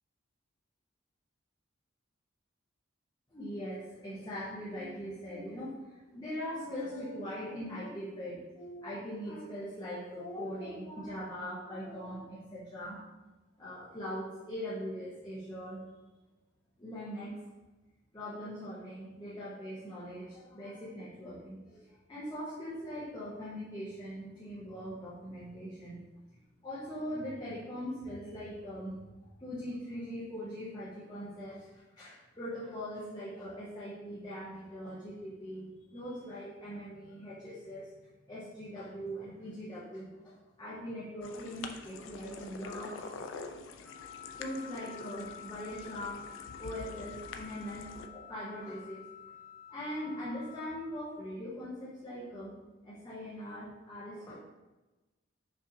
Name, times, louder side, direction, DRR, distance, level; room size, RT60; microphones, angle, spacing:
voice 1, 3.3-13.0 13.6-15.8 16.8-17.4 18.1-26.0 26.6-29.1 29.4-37.9 38.3-43.2 44.4-46.3 46.6-49.1 49.7-52.5 52.8-54.4, equal, 20° left, -10 dB, 0.7 m, -41 dB
sound 1, 41.2-48.1, left 4 dB, 75° left, 0.3 m, -46 dB
Wind instrument woodwind instrument, 43.8-50.8, left 9 dB, 5° left, 1.3 m, -50 dB
5.3 x 2.6 x 2.6 m, 1.1 s
head